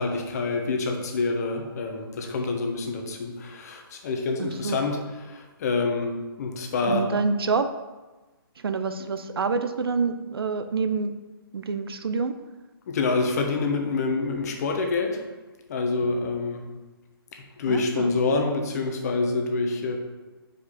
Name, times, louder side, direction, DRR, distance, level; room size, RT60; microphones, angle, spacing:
voice 1, 0.0-7.1 12.9-15.2 15.7-16.6 17.3-20.0, left 3 dB, 40° left, 3 dB, 1.0 m, -27 dB
voice 2, 4.4-4.8 6.8-7.7 8.6-11.1 11.5-12.4 17.7-18.1, right 4 dB, 75° right, 9 dB, 0.6 m, -27 dB
5.6 x 5.0 x 4.2 m, 1.2 s
hypercardioid pair, 155°, 13 cm